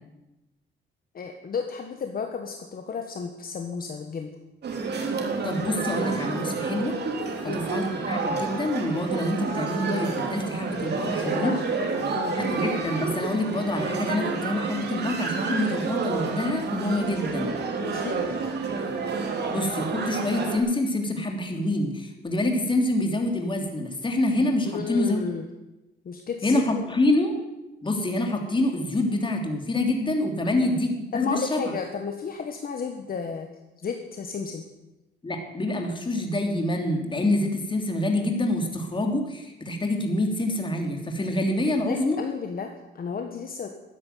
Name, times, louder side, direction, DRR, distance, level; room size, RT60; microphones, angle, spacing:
voice 1, 1.1-4.3 7.4-7.6 11.1-11.6 12.1-12.4 17.8-18.4 24.6-25.5 26.0-26.8 30.4-30.7 31.1-33.5 33.8-34.7 41.7-43.7, left 5 dB, 50° left, 4 dB, 1.6 m, -33 dB
sound 1, 4.6-20.6, right 4 dB, 55° right, 3.4 m, -29 dB
voice 2, 5.4-6.9 7.5-11.5 12.3-17.5 19.5-25.2 26.4-27.3 27.8-31.6 35.2-42.2, left 1 dB, 25° left, 3 dB, 3.3 m, -26 dB
13.5 x 9.7 x 9.4 m, 1.0 s
cardioid pair, 90°, 20 cm